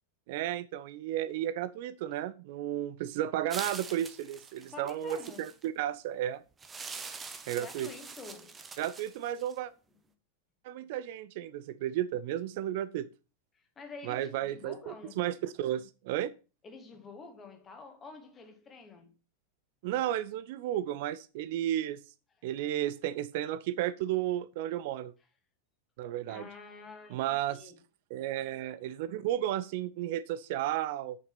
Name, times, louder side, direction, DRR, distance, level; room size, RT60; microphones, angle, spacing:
voice 1, 0.3-6.4 7.5-7.9 8.8-9.7 10.6-13.1 14.0-16.3 19.8-22.0 22.4-25.1 26.0-26.5 27.1-27.7 28.1-31.2, right 12 dB, 50° right, 0.4 m, -33 dB
sound 1, 3.5-5.7 6.6-9.6, right 4 dB, 15° right, 0.9 m, -44 dB
voice 2, 4.7-5.5 7.6-8.6 13.5-15.2 16.6-19.1 26.3-27.8, left 4 dB, 20° left, 1.9 m, -48 dB
6.7 x 5.8 x 5.8 m
figure-of-eight pair, 90°, 0 cm